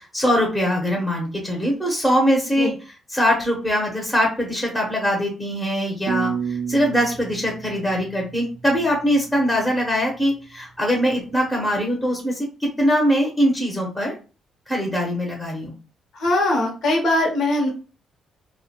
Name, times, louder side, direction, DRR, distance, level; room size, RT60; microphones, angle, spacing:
voice 1, 0.1-2.7 3.1-14.1 14.7-15.8, equal, 5° left, 0 dB, 0.8 m, -22 dB
sound 1, 6.1-9.0, right 7 dB, 55° right, 0.3 m, -30 dB
voice 2, 16.1-17.7, left 1 dB, 65° left, 0 dB, 0.9 m, -21 dB
2.3 x 2.1 x 2.8 m, 0.35 s
cardioid pair, 90°, 0 cm